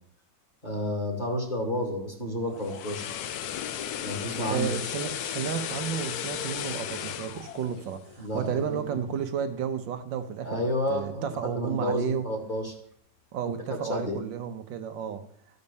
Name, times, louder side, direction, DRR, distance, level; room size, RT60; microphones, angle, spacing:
voice 1, 0.6-3.1 4.0-4.8 8.2-9.0 10.4-12.7 13.7-14.2, left 1 dB, 25° left, 2.1 m, -31 dB
sound 1, 2.4-8.6 9.0-9.2, left 10 dB, 65° left, 1.0 m, -35 dB
voice 2, 4.5-10.6 10.9-12.3 13.3-15.2, right 8 dB, 75° right, 1.5 m, -32 dB
13.0 x 5.3 x 7.0 m
omnidirectional pair, 2.1 m